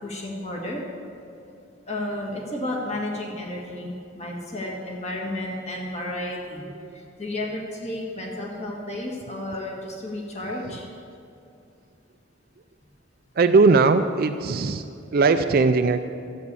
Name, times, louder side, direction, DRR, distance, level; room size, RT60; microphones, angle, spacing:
voice 1, 0.0-0.8 1.9-6.6 7.2-10.9, left 1 dB, 35° left, -2 dB, 1.8 m, -32 dB
voice 2, 13.4-14.8 15.1-16.0, right 4 dB, 50° right, 7 dB, 0.4 m, -19 dB
13.0 x 8.5 x 6.9 m, 2.6 s
head